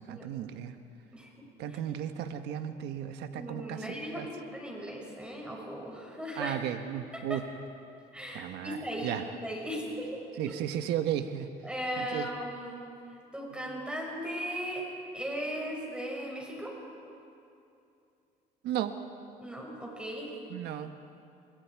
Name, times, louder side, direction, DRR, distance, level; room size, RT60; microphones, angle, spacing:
voice 1, 0.1-0.7 1.6-4.3 6.4-7.4 8.3-8.8 9.0-9.2 10.4-11.5 12.0-12.3 18.6-18.9 20.5-21.1, right 10 dB, 85° right, 8 dB, 1.3 m, -34 dB
voice 2, 3.3-6.5 7.1-7.4 8.1-9.1 9.4-10.2 11.6-12.9 13.3-14.8 15.1-16.8 19.4-20.3, equal, 5° right, -2 dB, 5.7 m, -37 dB
29.5 x 24.5 x 4.7 m, 2.6 s
cardioid pair, 110°, 17 cm